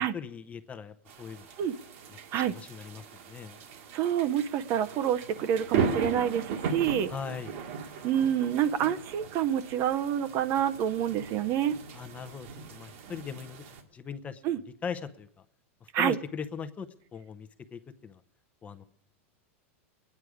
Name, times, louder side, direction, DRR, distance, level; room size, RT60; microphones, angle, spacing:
voice 1, 0.0-1.5 2.1-3.6 7.1-7.5 11.9-13.6 13.9-14.4 14.8-15.4 16.0-18.2 18.6-18.8, left 6 dB, 20° left, 11 dB, 0.7 m, -40 dB
sound 1, 1.1-13.8, right 6 dB, 65° right, 1.9 m, -37 dB
voice 2, 3.9-7.1 8.0-11.8 14.4-14.6 15.9-16.2, right 10 dB, 40° right, 12 dB, 0.6 m, -27 dB
22.0 x 9.5 x 4.9 m, 0.71 s
supercardioid pair, 135°, 7 cm